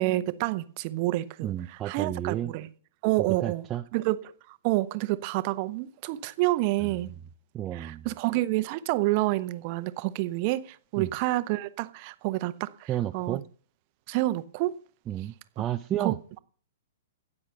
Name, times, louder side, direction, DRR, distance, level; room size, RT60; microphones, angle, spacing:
voice 1, 0.0-1.5 1.8-2.7 3.0-3.6 3.9-4.2 4.5-7.1 7.7-13.4 14.1-14.8 16.0-16.1, right 18 dB, 40° right, 0.9 m, -28 dB
voice 2, 1.4-2.5 3.2-3.8 6.8-7.0 7.5-8.1 11.0-11.1 12.9-13.4 15.1-16.2, right 11 dB, 25° right, 0.5 m, -32 dB
10.5 x 8.3 x 6.8 m
figure-of-eight pair, 110°, 0 cm